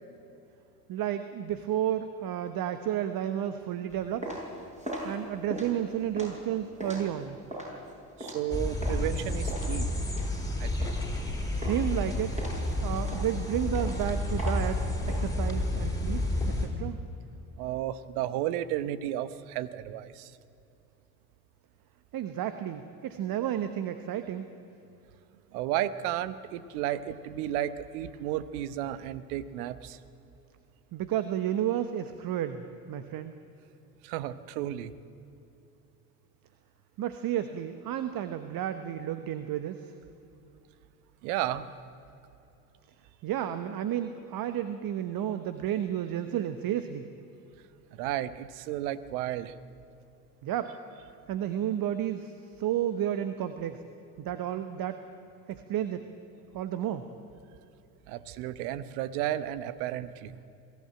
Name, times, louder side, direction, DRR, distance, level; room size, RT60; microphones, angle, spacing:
voice 1, 0.9-4.4 5.0-7.4 11.5-12.4 12.8-17.0 22.1-24.5 30.9-33.3 37.0-39.9 43.2-47.0 50.4-50.7 51.3-53.8 54.2-55.0 55.5-56.1 56.5-57.0, right 10 dB, 45° right, 10 dB, 1.2 m, -32 dB
sound 1, 3.9-9.1 9.5-11.3 11.6-12.0 12.4-15.2, equal, 15° right, 7.2 m, -40 dB
voice 2, 8.2-9.9 10.6-10.9 17.6-20.3 25.5-30.0 34.0-34.9 41.2-41.7 47.9-49.5 58.1-60.3, right 12 dB, 70° right, 15 dB, 1.0 m, -33 dB
sound 2, 8.5-16.7, left 1 dB, 5° left, 4.5 m, -30 dB
22.0 x 14.5 x 8.9 m, 2.8 s
hypercardioid pair, 60°, 47 cm